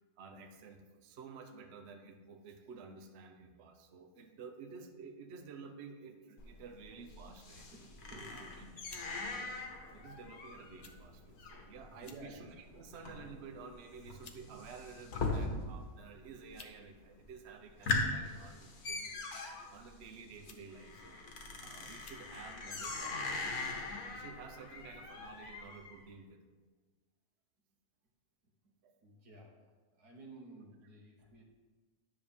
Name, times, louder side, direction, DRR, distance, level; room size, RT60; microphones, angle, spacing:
voice 1, 0.2-7.7 8.3-8.7 9.4-9.5 9.9-21.2 21.6-23.8 24.1-26.4 28.8-28.9, right 5 dB, 50° right, 5 dB, 0.9 m, -52 dB
sound 1, 6.4-16.0 16.2-16.8 17.2-17.3 17.6-26.0, left 3 dB, 75° left, 1.6 m, -41 dB
voice 2, 7.7-8.5 11.8-12.4 29.0-29.5 29.9-31.4, right 2 dB, 90° right, 0 dB, 1.9 m, -53 dB
sound 2, 8.9-9.1 9.9-10.1 10.8-11.0 11.3-11.4 11.9-12.3 12.8-13.0 13.8-13.9 14.2-14.4 15.5-15.6 16.3-16.8 17.0-17.1 17.7-18.1 19.3-19.6 20.4-20.8 21.3-21.4 21.9-22.3 22.8-23.0, left 5 dB, 55° left, 0.4 m, -55 dB
10.0 x 6.7 x 3.6 m, 1.3 s
omnidirectional pair, 1.6 m